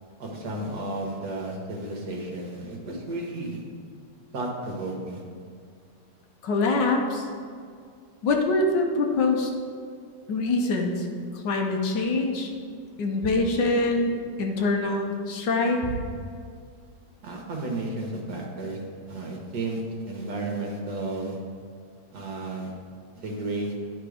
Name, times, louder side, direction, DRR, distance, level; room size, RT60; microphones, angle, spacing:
voice 1, 0.2-3.6 4.3-5.2 17.2-18.8 19.1-21.4 22.1-22.7 23.1-23.7, right 2 dB, 65° right, 0 dB, 1.7 m, -33 dB
voice 2, 6.4-7.3 8.2-9.5 10.3-11.1 11.3-12.5 13.0-15.9, left 2 dB, 75° left, 2 dB, 1.5 m, -24 dB
11.0 x 3.9 x 4.9 m, 2.2 s
omnidirectional pair, 1.9 m